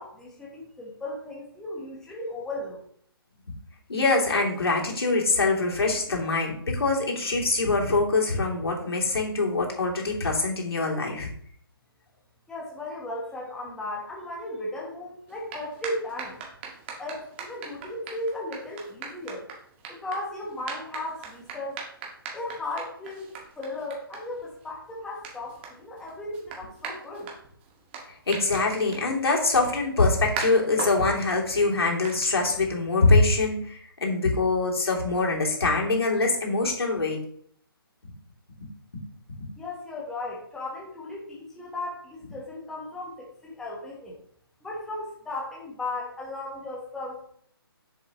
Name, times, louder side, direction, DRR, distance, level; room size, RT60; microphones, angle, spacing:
voice 1, 0.0-2.8 12.5-16.4 17.0-19.4 19.9-21.8 22.3-23.3 23.6-27.3 39.6-44.2 44.6-47.3, left 2 dB, 5° left, -4 dB, 1.2 m, -36 dB
voice 2, 3.9-11.3 28.3-37.2, left 3 dB, 80° left, -1 dB, 2.9 m, -24 dB
sound 1, 15.2-33.0, right 5 dB, 25° right, 1.9 m, -41 dB
7.4 x 7.0 x 3.0 m, 0.63 s
hypercardioid pair, 155°, 13 cm